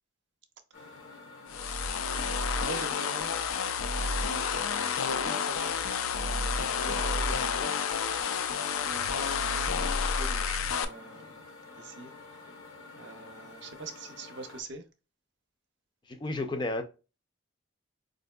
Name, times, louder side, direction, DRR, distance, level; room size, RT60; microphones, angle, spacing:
sound 1, 0.7-14.6, left 3 dB, 70° left, 0.7 m, -49 dB
voice 1, 0.8-1.2 2.6-3.5 3.9-4.5 5.0-5.8 6.1-7.7 8.7-11.4 11.8-12.5 12.9-14.8, right 3 dB, 60° right, 0.5 m, -45 dB
sound 2, 1.5-10.9, left 5 dB, 85° left, 0.4 m, -30 dB
voice 2, 16.1-16.8, left 2 dB, 25° left, 0.4 m, -32 dB
4.3 x 2.6 x 2.2 m
head